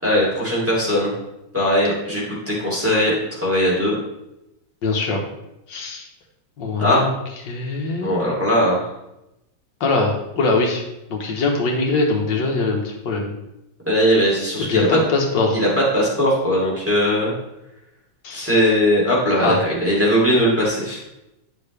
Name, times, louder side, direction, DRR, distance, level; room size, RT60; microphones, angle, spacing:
voice 1, 0.0-1.1 1.5-3.9 6.8-7.0 8.0-8.9 13.9-14.9 15.5-15.7 15.9-17.3 18.3-21.0, equal, 5° right, -6 dB, 2.8 m, -19 dB
voice 2, 4.8-5.2 5.7-6.1 6.6-7.1 7.4-8.1 9.8-10.8 11.1-13.3 14.7-15.6 18.2-18.5 19.4-19.6, left 3 dB, 80° left, 1 dB, 1.9 m, -22 dB
9.4 x 6.8 x 3.3 m, 0.90 s
omnidirectional pair, 2.0 m